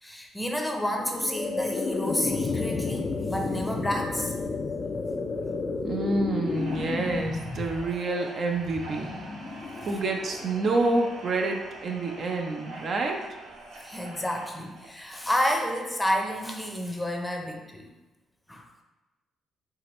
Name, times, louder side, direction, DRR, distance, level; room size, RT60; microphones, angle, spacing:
voice 1, 0.0-4.3 13.8-17.9 18.5-18.7, equal, 10° left, 2 dB, 0.6 m, -30 dB
sound 1, 0.8-11.9, left 4 dB, 45° left, 0.4 m, -32 dB
voice 2, 5.8-13.2, right 2 dB, 55° right, 2 dB, 0.6 m, -28 dB
sound 2, 6.4-15.3, right 2 dB, 90° right, 1.1 m, -45 dB
4.7 x 3.3 x 3.1 m, 1.1 s
cardioid pair, 90°, 0 cm